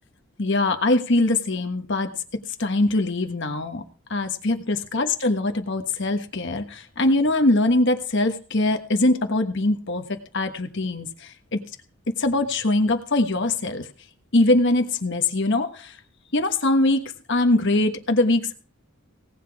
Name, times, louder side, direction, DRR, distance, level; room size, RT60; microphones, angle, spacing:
voice 1, 0.4-2.1 2.6-3.8 4.1-11.6 12.1-13.9 14.3-16.0 16.3-18.5, left 2 dB, 55° left, 6 dB, 1.3 m, -22 dB
18.0 x 8.3 x 4.8 m, 0.38 s
head